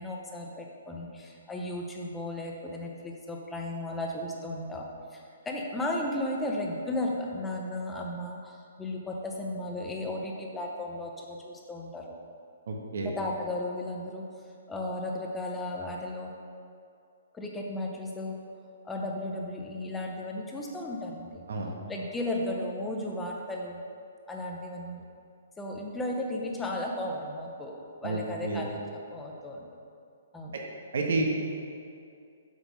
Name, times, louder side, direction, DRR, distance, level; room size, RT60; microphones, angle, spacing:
voice 1, 0.0-12.2 13.0-14.2 14.7-16.3 17.3-18.4 18.8-21.4 21.9-23.8 24.3-25.0 25.6-28.8 29.1-29.6 30.3-30.5, left 1 dB, 5° left, -1 dB, 0.6 m, -35 dB
voice 2, 12.7-13.1 21.5-21.7 28.0-28.7 30.5-30.6 30.9-31.2, right 3 dB, 55° right, 0 dB, 1.3 m, -30 dB
7.7 x 5.6 x 6.1 m, 2.4 s
hypercardioid pair, 180°, 0 cm